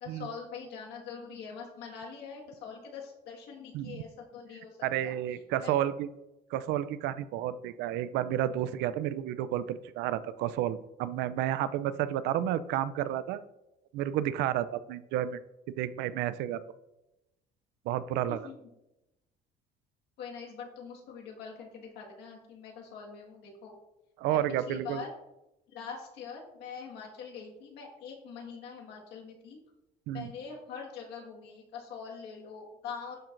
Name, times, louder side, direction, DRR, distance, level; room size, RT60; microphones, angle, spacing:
voice 1, 0.0-5.7 18.3-18.6 20.2-23.7 24.3-24.4 24.7-25.1 25.7-29.6 30.1-33.2, left 6 dB, 85° left, 0 dB, 1.6 m, -44 dB
voice 2, 4.8-6.1 6.5-13.4 13.9-15.4 15.8-16.6 17.9-18.5 24.2-25.0 30.1-30.3, right 12 dB, 90° right, 15 dB, 0.4 m, -31 dB
11.5 x 4.4 x 2.5 m, 0.93 s
cardioid pair, 110°, 17 cm